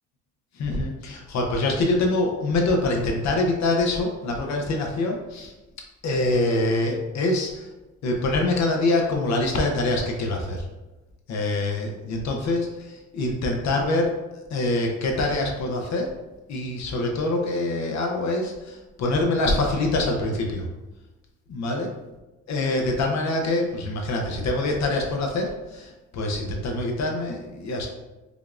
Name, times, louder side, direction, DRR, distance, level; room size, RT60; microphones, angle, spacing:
voice 1, 0.5-5.5 6.0-7.7 8.0-10.7 11.3-14.2 14.5-16.1 16.5-20.7 21.5-21.9 22.5-27.9, left 2 dB, 65° left, 1 dB, 0.7 m, -25 dB
5.1 x 2.3 x 2.4 m, 1.1 s
cardioid pair, 90°, 30 cm